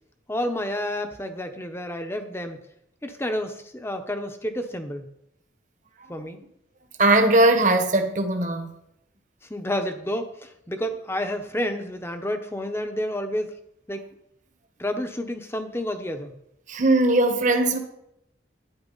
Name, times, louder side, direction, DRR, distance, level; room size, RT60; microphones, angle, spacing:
voice 1, 0.3-2.6 3.0-5.1 6.1-6.4 9.5-13.5 13.9-14.0 14.8-16.4, left 1 dB, 15° left, 1.0 m, -30 dB
voice 2, 7.0-8.7 16.7-17.8, right 2 dB, 40° right, 1.3 m, -19 dB
12.0 x 10.0 x 4.1 m
head